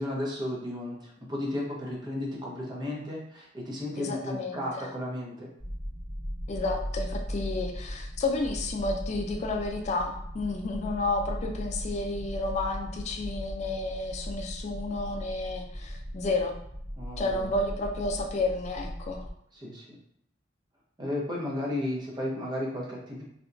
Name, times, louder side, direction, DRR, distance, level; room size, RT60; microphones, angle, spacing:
voice 1, 0.0-5.5 17.0-17.5 19.5-19.8 21.0-23.2, left 1 dB, 25° right, -3 dB, 0.7 m, -34 dB
voice 2, 4.0-4.9 6.5-16.6 17.2-19.3, left 2 dB, 40° left, 2 dB, 0.3 m, -31 dB
sound 1, 5.6-19.3, equal, 10° left, 1.0 m, -38 dB
2.8 x 2.2 x 2.5 m, 0.72 s
head